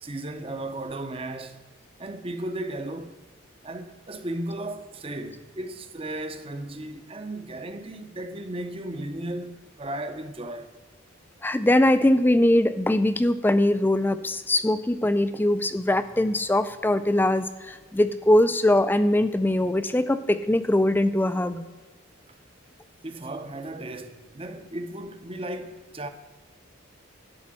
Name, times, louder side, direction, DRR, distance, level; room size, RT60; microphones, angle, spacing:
voice 1, 0.0-1.7 2.0-3.2 3.6-10.8 22.3-22.4 23.0-26.1, right 1 dB, 25° right, 0.7 m, -35 dB
voice 2, 11.4-21.6, left 1 dB, 10° left, 0.3 m, -22 dB
11.5 x 4.2 x 7.5 m
head